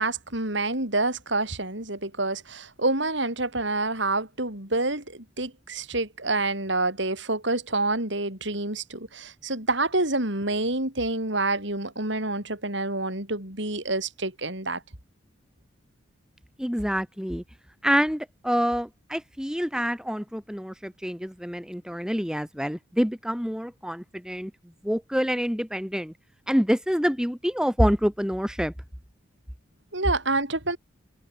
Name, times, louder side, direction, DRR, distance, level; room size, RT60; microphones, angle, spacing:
voice 1, 0.0-14.8 29.9-30.8, right 2 dB, 65° right, 7.0 m, -27 dB
voice 2, 16.6-17.4 17.8-24.5 24.8-26.1 26.5-28.7, equal, 5° right, 2.9 m, -26 dB
head